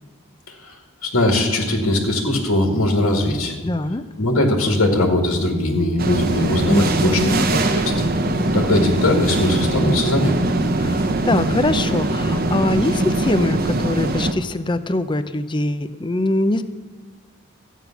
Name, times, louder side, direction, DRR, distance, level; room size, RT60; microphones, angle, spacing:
voice 1, 1.0-3.6 4.2-8.1 8.5-10.4, left 1 dB, 85° left, 2 dB, 2.0 m, -20 dB
voice 2, 3.6-4.0 6.7-7.5 10.8-16.6, left 2 dB, 20° left, 11 dB, 0.5 m, -22 dB
sound 1, 6.0-14.3, right 2 dB, 45° right, 0.9 m, -21 dB
13.5 x 9.2 x 5.9 m, 1.4 s
head